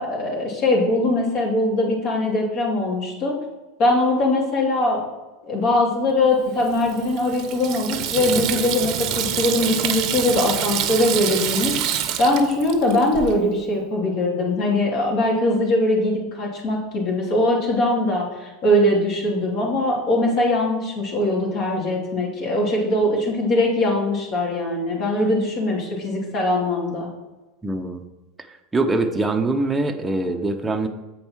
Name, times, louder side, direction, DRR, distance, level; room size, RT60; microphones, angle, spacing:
voice 1, 0.0-3.4 3.8-5.0 5.4-11.7 12.2-27.1, left 1 dB, 50° left, -2 dB, 3.0 m, -21 dB
Water tap faucet / Sink (filling or washing), 6.6-13.3, right 10 dB, 55° right, 0.8 m, -26 dB
voice 2, 27.6-28.0 28.7-30.9, right 2 dB, 15° right, 3 dB, 0.8 m, -23 dB
7.9 x 5.3 x 4.6 m, 1.1 s
hypercardioid pair, 100°, 0 cm